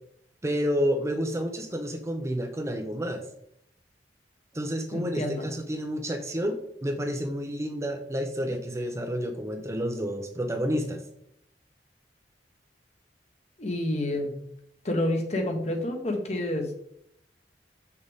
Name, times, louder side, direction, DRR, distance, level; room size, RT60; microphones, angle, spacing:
voice 1, 0.4-3.2 4.5-11.0, equal, 15° right, 4 dB, 0.7 m, -30 dB
voice 2, 4.9-5.5 13.6-14.3 14.8-16.9, left 1 dB, 40° left, 3 dB, 1.2 m, -29 dB
6.7 x 6.4 x 3.6 m, 0.73 s
head